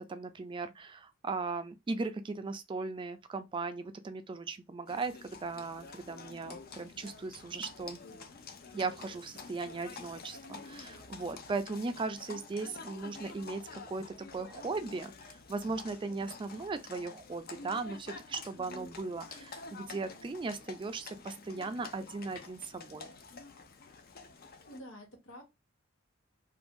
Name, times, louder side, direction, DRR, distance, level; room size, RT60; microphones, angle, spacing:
voice 1, 0.0-8.0 8.7-14.0 14.3-23.1, right 3 dB, 25° right, 0.3 m, -38 dB
Livestock farm animals working animals, 4.9-24.8, left 4 dB, 50° left, 0.5 m, -49 dB
voice 2, 18.6-18.9 24.7-25.4, equal, 75° left, 1.1 m, -48 dB
2.6 x 2.5 x 3.5 m
head